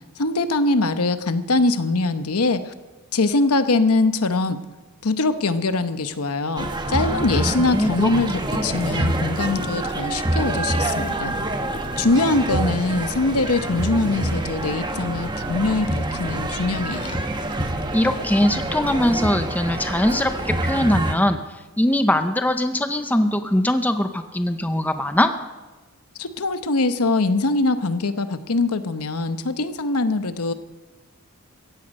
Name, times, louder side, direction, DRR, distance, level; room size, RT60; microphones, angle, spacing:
voice 1, 0.2-2.7 3.1-4.6 5.0-11.4 12.0-17.2 26.2-30.5, left 3 dB, 80° left, 10 dB, 1.0 m, -22 dB
sound 1, 6.6-21.1, right 1 dB, 20° right, 1.1 m, -26 dB
voice 2, 7.4-7.9 8.5-8.6 17.9-21.4 21.8-25.3, left 1 dB, 5° left, 8 dB, 0.6 m, -21 dB
16.5 x 15.0 x 5.4 m, 1.2 s
head